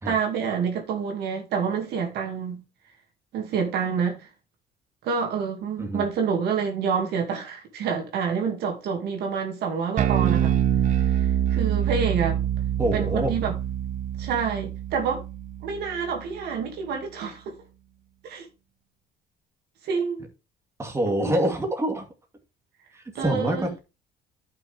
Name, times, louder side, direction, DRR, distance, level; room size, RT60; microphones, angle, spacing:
voice 1, 0.0-2.6 3.3-4.3 5.0-10.6 11.0-12.4 12.9-13.5 14.2-15.2 15.6-17.6 18.2-18.5 19.8-20.2 21.1-21.3 23.1-23.7, right 6 dB, 75° right, 2.4 m, -28 dB
Bass guitar, 10.0-16.4, right 10 dB, 50° right, 0.8 m, -25 dB
voice 2, 12.8-13.3 20.8-22.1 22.9-23.8, right 1 dB, 15° right, 2.4 m, -26 dB
11.0 x 6.0 x 3.5 m
cardioid pair, 110°, 17 cm